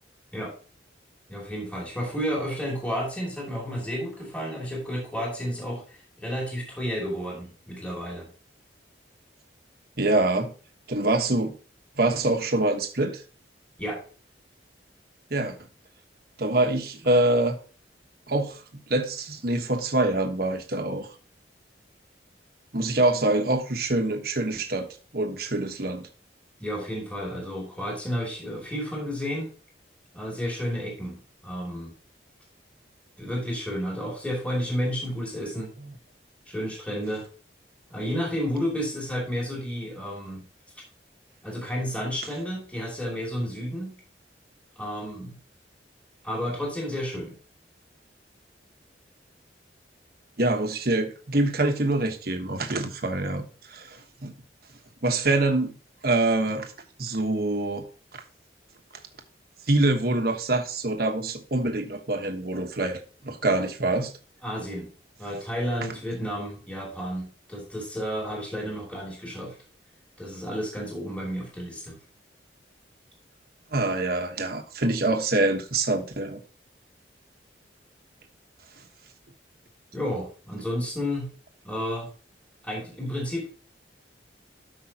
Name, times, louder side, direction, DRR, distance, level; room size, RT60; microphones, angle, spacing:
voice 1, 1.3-8.3 13.8-14.0 26.6-29.5 30.1-31.9 33.2-35.7 36.5-37.3 37.9-40.4 41.4-43.9 44.8-45.4 46.2-47.3 64.4-64.9 65.2-69.5 70.2-72.0 79.9-81.3 81.6-82.1 82.6-83.5, equal, 10° left, 2.7 m, -31 dB
voice 2, 10.0-10.5 10.9-11.5 12.0-13.2 15.3-15.6 16.4-17.6 18.3-18.6 18.9-21.1 22.7-24.9 25.1-26.1 50.4-54.3 55.0-55.7 56.0-56.7 57.0-57.8 58.1-58.2 59.7-63.0 63.2-64.1 73.7-76.4, right 2 dB, 55° right, 1.2 m, -25 dB
13.0 x 5.5 x 2.9 m
head